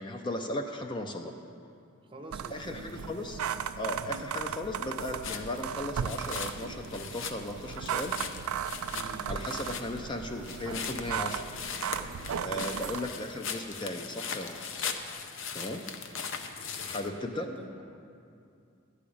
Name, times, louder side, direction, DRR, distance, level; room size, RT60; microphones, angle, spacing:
voice 1, 0.0-1.3 2.5-3.4 3.8-8.2 9.3-11.4 12.4-14.9 15.5-15.8 16.8-17.5, left 1 dB, 20° left, 5 dB, 0.4 m, -36 dB
voice 2, 2.0-3.3 8.9-9.3 12.5-12.9 15.5-16.3 16.8-17.7, right 1 dB, 25° right, 4 dB, 0.6 m, -48 dB
sound 1, 2.3-13.1, right 8 dB, 85° right, 0.4 m, -36 dB
sound 2, 5.2-17.1, left 6 dB, 60° left, 0.6 m, -40 dB
11.5 x 5.0 x 8.5 m, 2.5 s
head